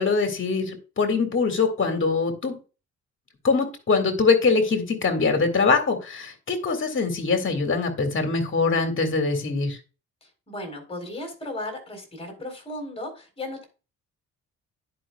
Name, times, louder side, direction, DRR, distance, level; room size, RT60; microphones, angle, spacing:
voice 1, 0.0-2.6 3.4-9.8, left 4 dB, 40° left, 6 dB, 2.0 m, -23 dB
voice 2, 10.2-13.6, left 1 dB, 20° left, 4 dB, 3.7 m, -35 dB
11.0 x 5.3 x 2.3 m, 0.32 s
cardioid pair, 90°, 30 cm